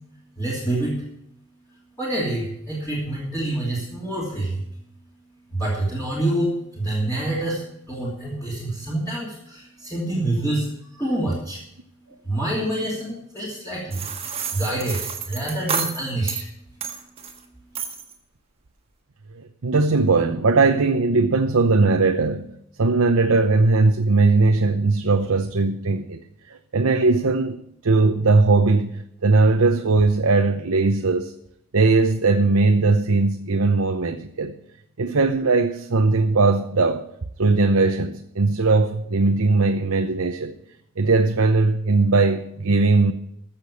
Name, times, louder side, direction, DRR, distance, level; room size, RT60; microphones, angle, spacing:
voice 1, 0.4-1.0 2.0-4.7 5.5-11.8 12.2-16.5, right 1 dB, 15° left, 2.8 m, -27 dB
sound 1, 13.9-16.5 16.8-17.4 17.7-18.1, right 6 dB, 25° right, 1.5 m, -30 dB
voice 2, 19.3-22.5 22.8-26.2 26.5-27.6 27.8-31.3 31.7-34.5 35.0-37.0 37.4-40.5 41.0-43.1, right 3 dB, 80° right, 0.8 m, -19 dB
14.5 x 6.9 x 6.9 m
head